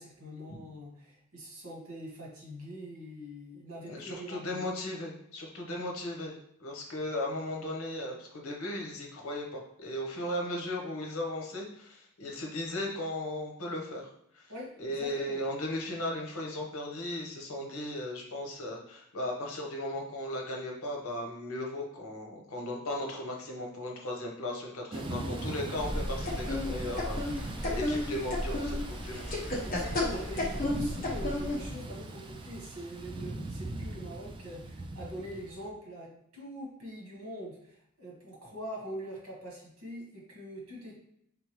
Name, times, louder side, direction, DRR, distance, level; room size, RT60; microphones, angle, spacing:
voice 1, 0.0-4.7 14.5-15.4 29.6-41.0, equal, 90° right, -2 dB, 1.6 m, -43 dB
voice 2, 3.9-14.5 14.8-29.3, left 1 dB, 80° left, 1 dB, 1.0 m, -36 dB
Thunder / Rain, 24.9-35.7, right 2 dB, 25° right, 0.3 m, -41 dB
sound 1, 25.8-31.7, left 1 dB, 40° left, 1.0 m, -33 dB
3.9 x 3.5 x 3.1 m, 0.75 s
head